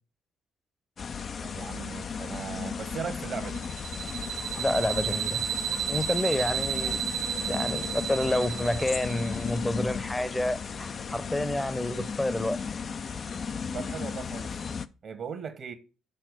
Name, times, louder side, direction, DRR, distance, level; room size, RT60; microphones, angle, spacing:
sound 1, 1.0-14.9, left 5 dB, 45° left, 0.5 m, -35 dB
voice 1, 1.4-3.7 13.7-14.6 15.0-15.7, right 6 dB, 55° right, 1.1 m, -38 dB
sound 2, 3.5-9.5, right 10 dB, 80° right, 0.9 m, -33 dB
voice 2, 4.5-5.4 5.9-7.0 7.4-12.6, left 1 dB, 10° left, 0.8 m, -29 dB
sound 3, 6.2-14.2, left 6 dB, 90° left, 1.2 m, -51 dB
6.8 x 5.8 x 5.2 m
hypercardioid pair, 50°, 0 cm